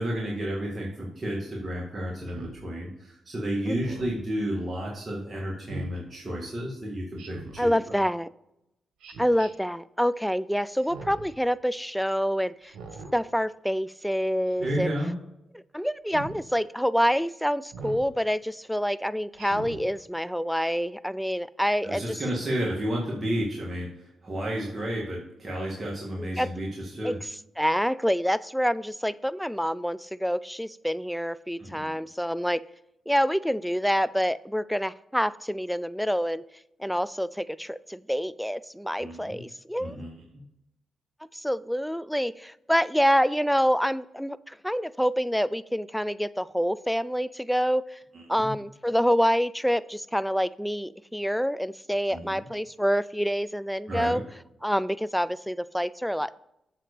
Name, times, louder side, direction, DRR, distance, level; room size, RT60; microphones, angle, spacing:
voice 1, 0.0-8.0 14.6-15.1 21.8-27.2 31.6-31.9 39.0-39.4 39.8-40.1 48.1-48.2 52.1-52.4 53.9-54.2, equal, 35° right, -3 dB, 1.9 m, -32 dB
Speech synthesizer, 2.3-2.6 3.7-4.2 5.7-6.0 7.2-7.7 9.0-9.5 10.8-11.3 12.6-13.1 14.5-14.9 16.1-16.4 17.7-18.1 19.4-19.9, right 3 dB, 85° right, 1.3 m, -40 dB
voice 2, 7.6-8.3 9.2-12.7 13.1-14.9 15.7-22.2 26.2-26.5 27.0-27.2 27.6-32.6 33.1-36.4 36.8-40.0 41.4-47.8 48.3-54.2 54.6-56.3, equal, ahead, 16 dB, 0.3 m, -27 dB
7.5 x 4.0 x 6.6 m, 0.82 s
cardioid pair, 65°, 0 cm